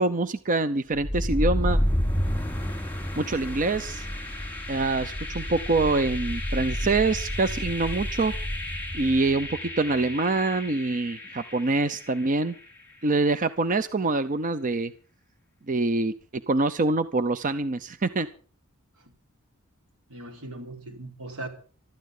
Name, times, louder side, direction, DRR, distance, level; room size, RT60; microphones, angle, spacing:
voice 1, 0.0-1.8 3.2-4.1 4.7-8.3 8.9-12.5 13.0-14.9 15.7-16.1 16.5-18.3, right 3 dB, 40° right, 12 dB, 0.6 m, -25 dB
sound 1, 0.9-12.8, equal, 10° left, 5.5 m, -30 dB
voice 2, 20.1-21.5, right 2 dB, 80° right, 3 dB, 4.4 m, -39 dB
24.0 x 13.0 x 3.8 m, 0.40 s
head